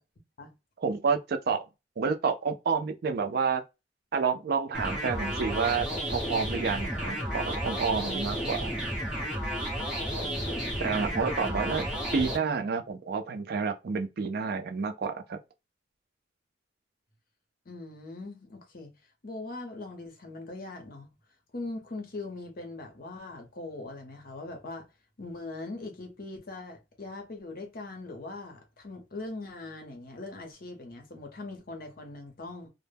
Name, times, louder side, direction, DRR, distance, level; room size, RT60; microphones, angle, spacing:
voice 1, 0.8-1.6 2.0-3.6 4.1-8.7 10.8-11.9 12.1-15.4, right 5 dB, 55° right, 0.4 m, -29 dB
sound 1, 4.7-12.4, equal, 5° right, 1.0 m, -32 dB
voice 2, 10.2-11.7 17.7-18.9 19.2-21.1 21.5-24.9 25.2-32.7, left 2 dB, 55° left, 0.7 m, -41 dB
2.1 x 2.0 x 3.3 m
head